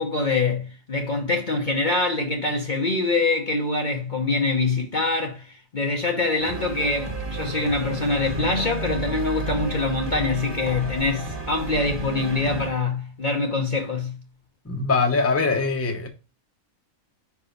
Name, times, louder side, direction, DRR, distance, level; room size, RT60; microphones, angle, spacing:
voice 1, 0.0-14.2, left 3 dB, 40° left, 0.8 m, -24 dB
sound 1, 6.4-12.7, right 2 dB, 20° right, 1.3 m, -31 dB
voice 2, 14.6-16.1, left 4 dB, 10° left, 0.8 m, -22 dB
5.5 x 4.7 x 5.1 m
omnidirectional pair, 1.4 m